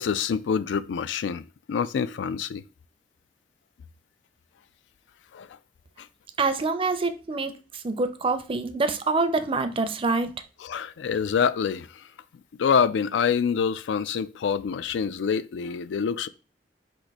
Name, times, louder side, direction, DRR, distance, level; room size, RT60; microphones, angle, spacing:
voice 1, 0.0-1.4 1.7-2.6 5.3-5.5 10.6-11.9 12.6-16.3, left 6 dB, 90° left, 0.3 m, -26 dB
voice 2, 6.4-10.3, right 3 dB, 30° right, 0.5 m, -26 dB
4.6 x 2.6 x 4.0 m
head